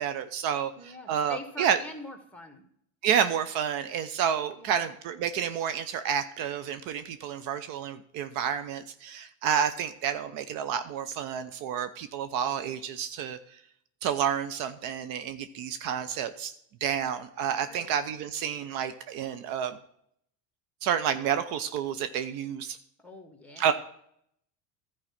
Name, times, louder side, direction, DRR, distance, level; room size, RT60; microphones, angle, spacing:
voice 1, 0.0-1.8 3.0-13.4 14.0-16.5 16.8-19.8 20.8-22.8 23.6-23.7, right 8 dB, 60° right, 11 dB, 0.8 m, -30 dB
voice 2, 0.8-2.6 4.6-4.9 17.6-17.9 23.0-23.7, left 2 dB, 5° left, 5 dB, 1.8 m, -44 dB
12.5 x 4.8 x 5.7 m, 0.70 s
supercardioid pair, 100°, 38 cm